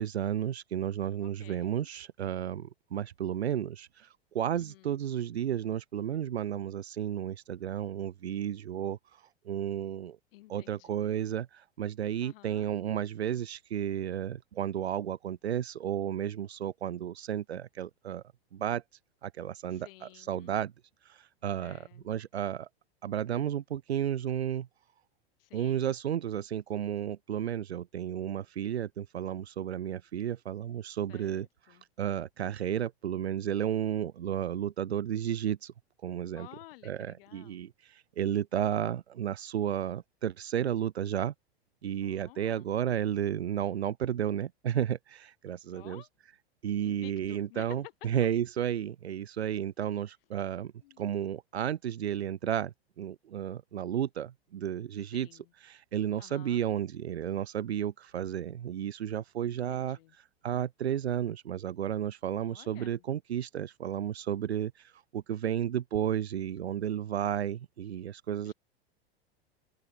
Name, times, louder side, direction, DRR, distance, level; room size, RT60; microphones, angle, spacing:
voice 1, 0.0-10.2 10.5-18.2 18.5-18.8 19.2-20.7 21.0-22.7 23.0-24.7 25.5-35.7 36.0-36.5 36.8-41.3 41.8-46.1 46.6-55.3 55.6-68.5, right 10 dB, 85° right, 0.8 m, -33 dB
voice 2, 1.2-1.9 4.5-5.0 10.3-11.1 12.2-12.7 19.7-20.6 21.5-22.1 25.4-25.9 31.1-31.8 36.3-37.6 42.0-42.7 45.7-46.1 46.8-47.9 50.8-51.0 55.0-55.5 56.2-56.6 59.6-60.1 62.4-63.0 68.3-68.5, left 19 dB, 60° left, 3.3 m, -53 dB
open air
hypercardioid pair, 95°, 31 cm